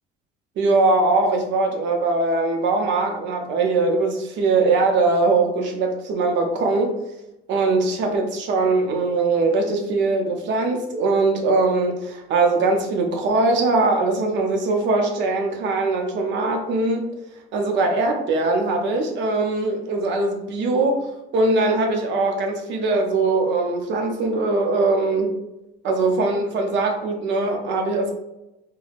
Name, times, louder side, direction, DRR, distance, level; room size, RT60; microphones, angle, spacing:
voice 1, 0.6-6.9 7.5-17.1 17.5-25.3 25.8-28.1, right 3 dB, 65° right, 3 dB, 0.6 m, -21 dB
3.3 x 2.2 x 2.5 m, 0.92 s
supercardioid pair, 85°, 20 cm